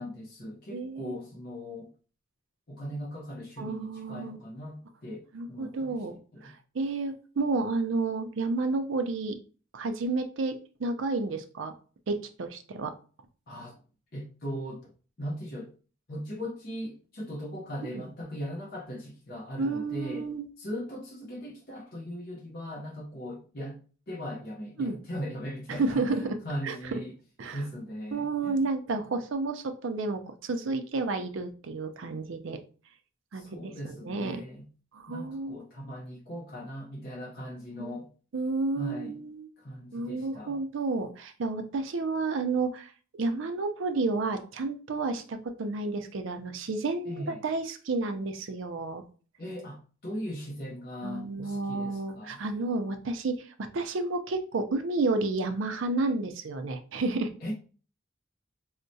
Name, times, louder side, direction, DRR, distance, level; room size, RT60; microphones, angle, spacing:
voice 1, 0.0-1.9 2.7-6.5 13.5-13.8 14.1-14.9 15.2-15.7 16.1-20.3 20.6-23.8 24.1-27.1 27.5-28.6 33.3-34.7 35.1-38.1 38.8-39.2 39.6-40.6 47.1-47.4 49.4-52.4 57.4-57.5, equal, 45° left, 0.7 m, -39 dB
voice 2, 0.7-1.1 3.6-4.4 5.3-6.1 6.4-9.4 9.7-11.7 12.1-13.0 17.9-18.0 19.6-20.5 24.8-25.0 25.7-26.4 26.6-27.0 27.4-27.6 28.1-32.6 33.3-33.7 34.0-34.4 34.9-35.6 37.8-38.0 38.3-39.5 39.9-49.0 51.0-57.3, right 3 dB, 65° right, 0.5 m, -31 dB
4.5 x 2.1 x 2.6 m
head